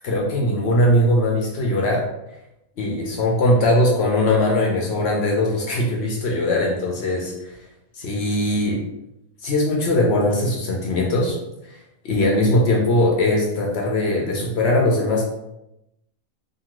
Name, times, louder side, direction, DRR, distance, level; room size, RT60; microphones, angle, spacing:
voice 1, 0.0-2.0 2.8-7.5 8.0-8.8 9.4-11.3 11.7-11.8 12.0-15.2, left 1 dB, 60° left, -1 dB, 0.7 m, -20 dB
2.7 x 2.6 x 2.9 m, 0.88 s
omnidirectional pair, 1.5 m